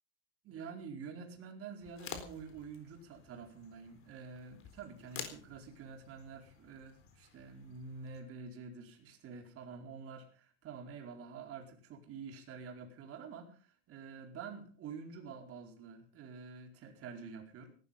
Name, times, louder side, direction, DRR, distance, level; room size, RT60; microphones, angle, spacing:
voice 1, 0.4-17.8, right 5 dB, 40° right, 3 dB, 4.5 m, -48 dB
sound 1, 1.8-8.2, left 7 dB, 40° left, 3.9 m, -51 dB
18.0 x 12.5 x 5.4 m, 0.40 s
supercardioid pair, 135°, 34 cm